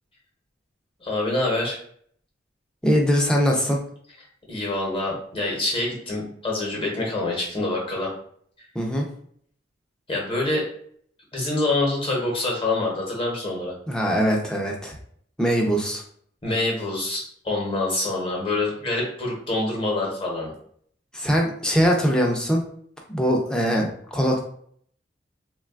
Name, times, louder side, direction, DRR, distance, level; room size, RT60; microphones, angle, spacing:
voice 1, 1.0-1.8 4.5-8.1 10.1-10.7 11.3-13.7 16.4-20.5, left 2 dB, 30° left, -3 dB, 0.8 m, -26 dB
voice 2, 2.8-3.8 8.7-9.1 13.9-15.0 15.4-16.0 21.1-22.6 23.1-24.4, equal, 5° left, 0 dB, 0.4 m, -22 dB
3.1 x 2.2 x 2.3 m, 0.62 s
head